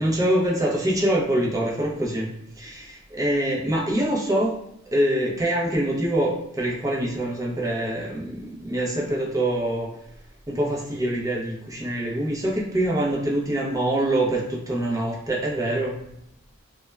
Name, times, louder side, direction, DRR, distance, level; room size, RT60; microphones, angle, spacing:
voice 1, 0.0-2.3 2.6-4.6 4.9-9.9 10.5-16.0, right 1 dB, 15° right, -3 dB, 0.4 m, -24 dB
2.1 x 2.1 x 3.1 m, 0.80 s
head